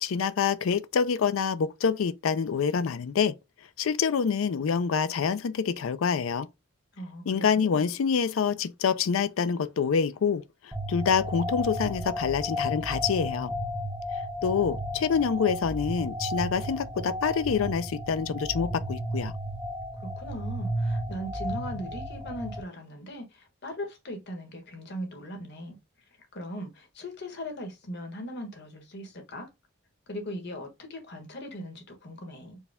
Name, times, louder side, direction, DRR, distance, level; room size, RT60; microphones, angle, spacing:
voice 1, 0.0-3.3 3.8-6.5 7.3-13.5 14.4-19.3, left 6 dB, 75° left, 0.4 m, -26 dB
voice 2, 6.9-7.8 20.0-25.8 26.3-29.5 30.1-32.6, equal, 55° left, 1.3 m, -39 dB
sound 1, 10.7-22.6, equal, 5° right, 0.6 m, -33 dB
4.7 x 2.2 x 3.4 m
head